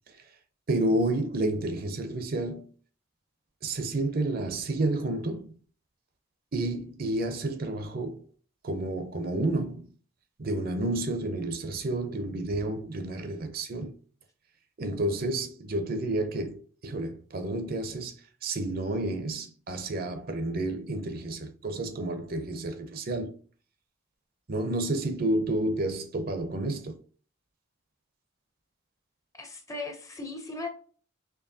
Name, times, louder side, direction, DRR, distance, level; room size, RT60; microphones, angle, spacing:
voice 1, 0.7-2.7 3.6-5.5 6.5-8.2 8.6-9.9 10.4-13.9 14.8-18.1 18.4-23.4 24.5-27.0, right 2 dB, 45° right, 0.6 m, -30 dB
voice 2, 29.3-30.7, left 3 dB, 15° left, 0.5 m, -37 dB
4.5 x 3.0 x 2.7 m
head